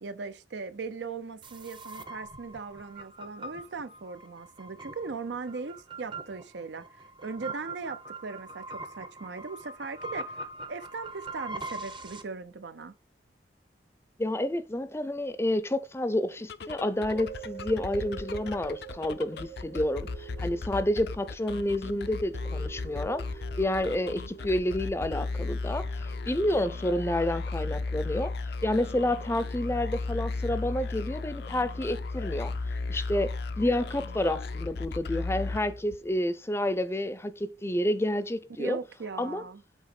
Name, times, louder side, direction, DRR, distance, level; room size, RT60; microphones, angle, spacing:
voice 1, 0.0-10.4 10.7-12.9 38.6-39.6, right 4 dB, 80° right, 0.6 m, -39 dB
sound 1, 1.4-12.2, right 2 dB, 30° right, 0.7 m, -42 dB
voice 2, 14.2-23.2 23.6-28.3 28.6-32.5 32.9-38.8 39.2-39.4, left 1 dB, 15° left, 0.5 m, -29 dB
sound 2, 16.4-36.1, left 3 dB, 65° left, 0.5 m, -35 dB
sound 3, 17.1-27.5 28.0-28.1, right 10 dB, 55° right, 1.6 m, -47 dB
8.1 x 3.0 x 5.9 m
head